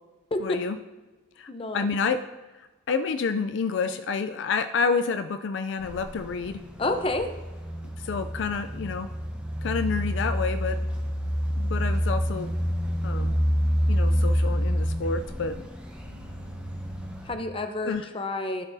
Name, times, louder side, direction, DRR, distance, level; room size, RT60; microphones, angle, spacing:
voice 1, 0.4-0.8 1.4-1.5 1.7-2.2 2.9-6.6 8.0-9.1 9.6-10.8 11.6-12.5 13.0-13.3 13.9-15.5 17.9-18.1, left 5 dB, 65° left, 9 dB, 0.4 m, -28 dB
voice 2, 1.5-1.8 6.8-7.3 17.2-18.6, left 2 dB, 30° left, 6 dB, 0.7 m, -29 dB
sound 1, 5.8-17.3, equal, 5° right, 0.9 m, -28 dB
13.5 x 5.9 x 2.7 m, 1.2 s
head